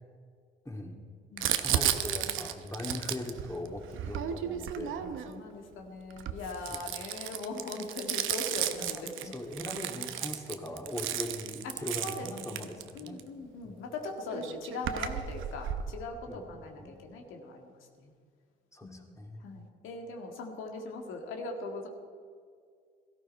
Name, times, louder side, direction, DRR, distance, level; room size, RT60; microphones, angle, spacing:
voice 1, 0.6-1.0 1.6-5.0 6.7-6.9 8.7-13.2 13.6-13.7 16.3-16.5 16.8-16.9 18.7-19.4, left 1 dB, 15° left, 2 dB, 2.3 m, -40 dB
voice 2, 1.3-1.7 5.0-9.3 11.1-11.3 11.6-11.7 12.0-12.4 12.9-18.1 18.8-19.2 19.4-21.9, left 3 dB, 90° left, 2 dB, 2.0 m, -40 dB
Crumpling crinkling, 1.4-5.4 6.1-13.2 14.0-14.1 14.3-15.9, right 10 dB, 85° right, 0.9 m, -34 dB
17.5 x 13.5 x 4.5 m, 2.1 s
cardioid pair, 90°, 20 cm